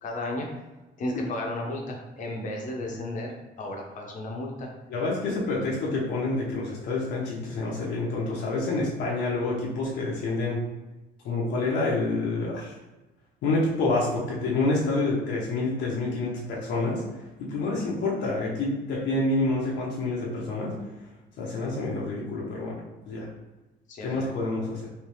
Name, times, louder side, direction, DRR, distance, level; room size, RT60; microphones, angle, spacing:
voice 1, 0.0-0.5 1.0-3.3 3.6-4.7 5.4-5.7 17.6-17.7 23.9-24.3, left 1 dB, 45° left, 0 dB, 0.8 m, -34 dB
voice 2, 4.9-10.6 11.2-12.7 13.4-17.0 17.4-20.8 21.4-22.8 23.1-23.3 24.0-24.9, left 2 dB, 75° left, -4 dB, 0.9 m, -28 dB
3.2 x 3.2 x 3.1 m, 1.1 s
cardioid pair, 155°, 18 cm